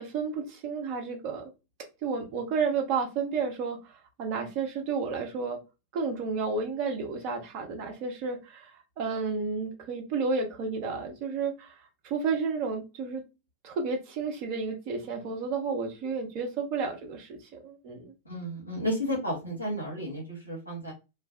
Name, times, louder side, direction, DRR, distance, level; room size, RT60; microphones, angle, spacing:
voice 1, 0.0-1.5 2.0-5.6 5.9-11.7 12.0-13.2 13.6-18.1, right 4 dB, 40° right, 0.8 m, -31 dB
voice 2, 18.2-20.9, equal, 85° left, 1.0 m, -32 dB
2.5 x 2.1 x 2.4 m
figure-of-eight pair, 90°, 0 cm